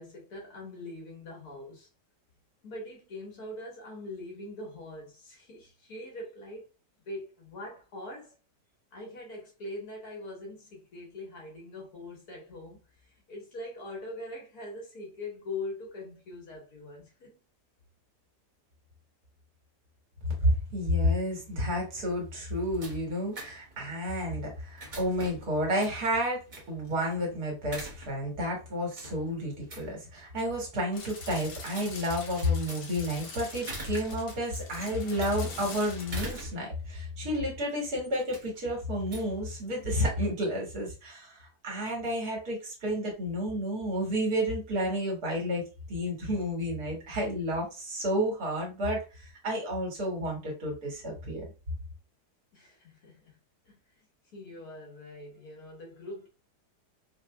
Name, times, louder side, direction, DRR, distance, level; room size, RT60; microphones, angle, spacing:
voice 1, 0.0-1.9 2.6-6.7 7.1-8.3 8.9-17.4 52.5-53.4 53.7-54.0 54.3-56.3, left 2 dB, 65° left, 1.8 m, -42 dB
voice 2, 20.4-51.4, equal, 70° right, 1.9 m, -31 dB
sound 1, 22.1-40.1, right 1 dB, 35° right, 1.0 m, -47 dB
sound 2, 30.9-36.4, left 3 dB, 80° left, 1.6 m, -44 dB
4.1 x 2.6 x 2.2 m
omnidirectional pair, 1.8 m